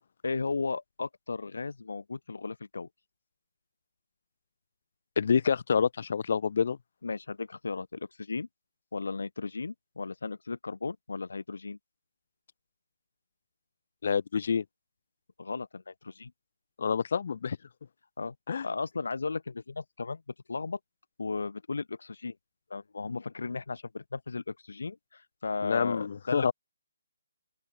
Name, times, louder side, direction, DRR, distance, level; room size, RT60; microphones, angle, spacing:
voice 1, 0.2-2.9 7.0-8.5 8.9-11.8 15.4-16.3 18.2-18.3 18.6-20.2 20.5-20.8 21.2-22.4 22.7-26.5, left 4 dB, 75° left, 2.4 m, -35 dB
voice 2, 5.2-6.8 14.0-14.6 16.8-17.6 18.5-18.7 25.6-26.5, left 6 dB, 55° left, 1.1 m, -27 dB
open air
hypercardioid pair, 160°, 0 cm